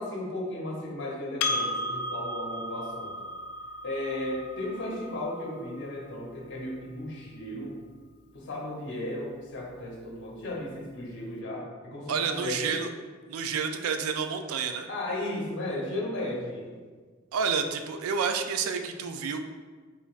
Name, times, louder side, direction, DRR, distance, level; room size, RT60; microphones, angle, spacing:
voice 1, 0.0-3.3 3.8-7.8 8.3-12.8 14.9-16.8, left 1 dB, 60° left, -3 dB, 0.8 m, -35 dB
Percussion, 1.4-6.2, left 2 dB, 90° left, 0.3 m, -34 dB
voice 2, 12.1-12.9 13.3-14.9 17.3-19.5, right 6 dB, 85° right, 7 dB, 0.3 m, -29 dB
5.0 x 2.5 x 2.4 m, 1.5 s
head